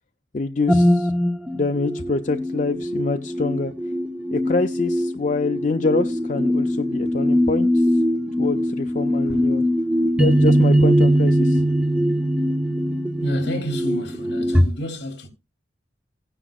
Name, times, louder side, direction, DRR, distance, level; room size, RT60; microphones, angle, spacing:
voice 1, 0.3-1.1 1.5-3.7 4.3-7.9 8.4-9.6 10.2-11.6, left 3 dB, 45° left, 0.5 m, -25 dB
sound 1, 0.7-14.6, equal, 5° right, 0.9 m, -21 dB
voice 2, 13.2-15.3, equal, 70° left, 2.8 m, -29 dB
16.5 x 10.0 x 2.4 m
head